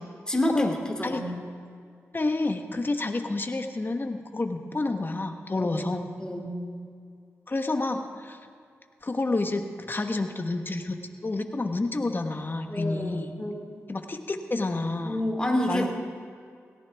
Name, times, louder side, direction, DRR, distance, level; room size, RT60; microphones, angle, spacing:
voice 1, 0.3-1.4 5.5-5.7 6.2-6.6 12.7-13.8 15.0-15.9, left 1 dB, 15° left, 1 dB, 2.6 m, -29 dB
voice 2, 2.1-6.0 7.5-8.4 9.0-13.3 13.9-15.2 15.7-15.9, left 2 dB, 35° left, 6 dB, 1.4 m, -29 dB
17.5 x 15.5 x 3.6 m, 2.3 s
cardioid pair, 45°, 6 cm